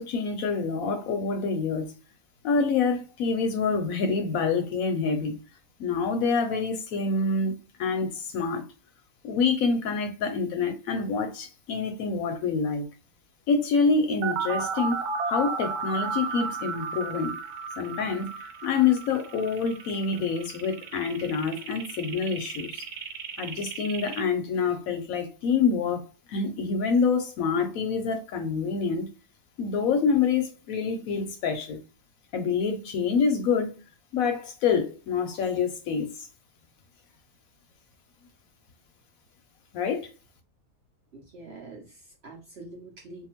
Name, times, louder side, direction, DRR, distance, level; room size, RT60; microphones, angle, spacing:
voice 1, 0.0-1.9 2.4-5.4 5.8-8.7 9.2-12.9 13.5-15.0 15.3-17.3 17.8-18.3 18.6-22.8 23.4-29.1 29.6-31.8 32.3-33.8 34.1-36.3 39.7-40.1, left 5 dB, 70° left, 0.9 m, -26 dB
sound 1, 14.2-24.2, right 5 dB, 75° right, 1.1 m, -34 dB
voice 2, 41.1-43.3, right 2 dB, 55° right, 0.7 m, -45 dB
2.7 x 2.2 x 2.9 m
omnidirectional pair, 1.7 m